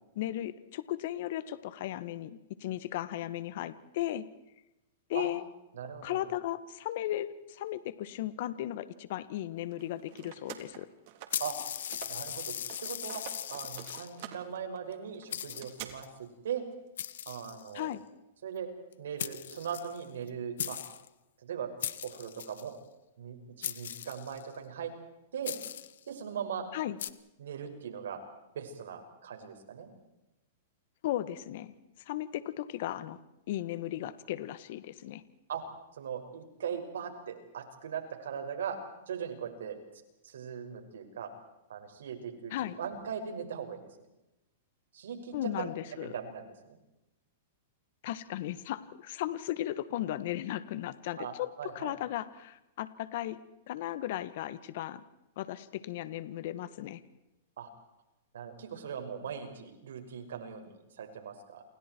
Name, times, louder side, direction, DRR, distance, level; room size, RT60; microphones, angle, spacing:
voice 1, 0.2-4.3 5.1-5.4 6.0-10.9 17.7-18.0 26.7-27.0 31.0-31.8 32.1-33.2 33.5-35.2 42.5-42.8 45.3-46.2 48.0-51.5 51.8-53.4 53.7-55.0 55.4-57.0, left 13 dB, 60° left, 14 dB, 1.6 m, -36 dB
voice 2, 5.7-6.3 11.4-11.6 12.1-12.5 12.8-13.2 13.5-16.6 17.3-17.9 18.4-18.7 19.0-20.8 21.4-21.7 22.0-22.7 23.2-24.9 25.3-25.5 26.1-26.7 27.4-28.2 28.5-29.9 35.5-35.6 35.9-38.8 39.1-39.8 40.2-41.3 41.7-42.5 42.8-43.9 44.9-45.7 46.0-46.8 51.2-51.9 57.6-57.7 58.3-61.6, right 7 dB, 80° right, 5 dB, 6.0 m, -39 dB
sound 1, 9.7-12.3 12.6-15.9, right 13 dB, 50° right, 3.9 m, -48 dB
sound 2, 11.3-14.3 14.9-15.0 15.3-16.1 17.0-17.9 18.9-19.0 19.2-20.3 20.6-21.1 21.8-22.7 23.6-24.5 25.4-26.0 27.0-27.1, left 10 dB, 80° left, 1.4 m, -39 dB
29.0 x 28.5 x 4.7 m, 0.94 s
hypercardioid pair, 140°, 0 cm